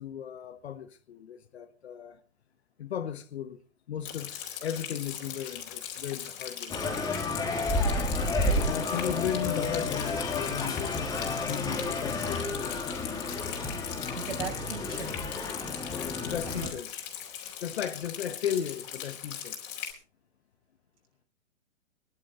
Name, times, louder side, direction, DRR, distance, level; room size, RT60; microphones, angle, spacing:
voice 1, 0.0-2.2 2.8-3.6 3.9-4.3 4.6-6.8 8.6-12.8 15.9-16.9 17.6-19.5, left 9 dB, 55° left, 1.4 m, -35 dB
Rain, 4.0-19.9, left 10 dB, 30° left, 4.1 m, -40 dB
sound 1, 6.7-16.7, left 2 dB, 10° left, 2.8 m, -31 dB
voice 2, 14.2-15.2 16.5-16.7, right 7 dB, 60° right, 6.2 m, -39 dB
23.0 x 11.5 x 3.8 m
figure-of-eight pair, 120°, 39 cm